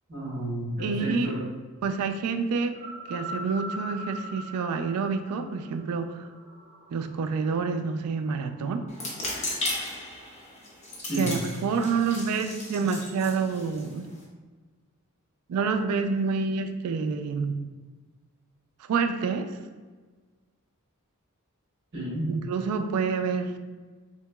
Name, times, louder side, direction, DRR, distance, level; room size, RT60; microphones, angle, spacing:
voice 1, 0.1-1.4 11.0-11.3 21.9-22.3, right 1 dB, 55° right, -8 dB, 1.3 m, -31 dB
voice 2, 0.8-1.4 1.8-2.8 3.1-6.3 6.9-8.9 11.1-14.1 15.5-17.6 18.8-19.6 22.3-23.6, right 5 dB, 85° right, 9 dB, 0.3 m, -28 dB
sound 1, 2.2-9.7, right 1 dB, 35° right, 0.6 m, -43 dB
sound 2, 8.9-14.2, left 2 dB, 30° left, 0.7 m, -36 dB
3.6 x 2.8 x 2.2 m, 1.4 s
head